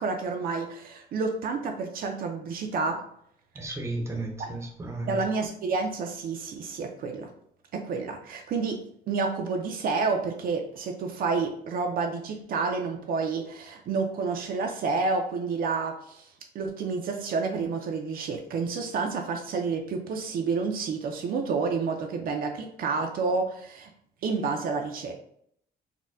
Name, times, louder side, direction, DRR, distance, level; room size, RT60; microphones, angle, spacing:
voice 1, 0.0-3.0 4.4-4.5 5.1-7.3 7.7-8.8 9.1-16.3 16.5-23.9 24.2-25.1, right 4 dB, 60° right, 3 dB, 0.4 m, -29 dB
voice 2, 3.6-5.2, right 2 dB, 15° right, 2 dB, 0.6 m, -34 dB
4.1 x 2.1 x 2.5 m, 0.68 s
cardioid pair, 140°, 17 cm